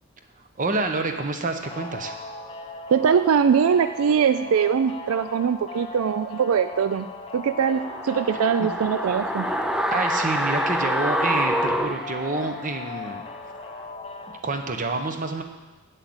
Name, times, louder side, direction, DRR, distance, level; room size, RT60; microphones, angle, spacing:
voice 1, 0.6-2.1 8.6-8.7 9.9-13.2 14.4-15.4, right 3 dB, 40° right, 6 dB, 1.1 m, -28 dB
sound 1, 1.6-14.4, left 3 dB, 30° left, 0.9 m, -37 dB
voice 2, 2.9-7.1 7.3-9.5, right 7 dB, 80° right, 11 dB, 0.4 m, -22 dB
sound 2, 7.7-12.8 13.1-13.2, equal, 5° right, 0.5 m, -26 dB
8.5 x 8.0 x 8.0 m, 1.2 s
head